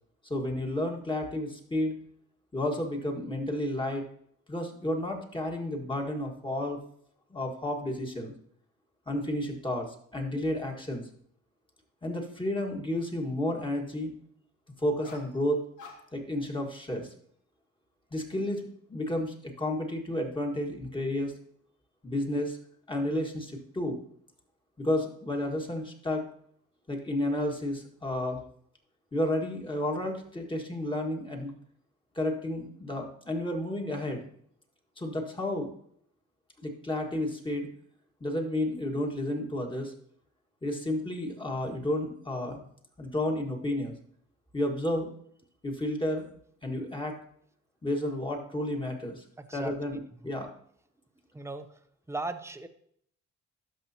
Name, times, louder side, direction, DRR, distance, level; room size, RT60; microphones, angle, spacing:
voice 1, 0.2-2.0 2.5-4.0 4.5-6.8 7.3-8.3 9.1-11.0 12.0-14.1 14.8-15.6 16.1-17.1 18.1-21.3 22.0-22.6 22.9-24.0 24.8-26.3 26.9-28.4 29.1-31.5 32.2-34.2 35.0-35.7 36.6-37.7 38.2-39.9 40.6-42.6 43.0-44.0 44.5-45.1 45.6-46.3 46.6-47.2 47.8-49.2 49.5-50.5, left 1 dB, 15° left, 2 dB, 1.7 m, -31 dB
sound 1, 15.0-15.4 15.8-16.3 16.8-17.2, left 4 dB, 85° left, 1.6 m, -50 dB
voice 2, 49.4-49.7 51.3-51.8 52.1-52.7, right 2 dB, 10° right, 9 dB, 0.7 m, -37 dB
13.0 x 5.5 x 2.9 m, 0.65 s
cardioid pair, 90°, 30 cm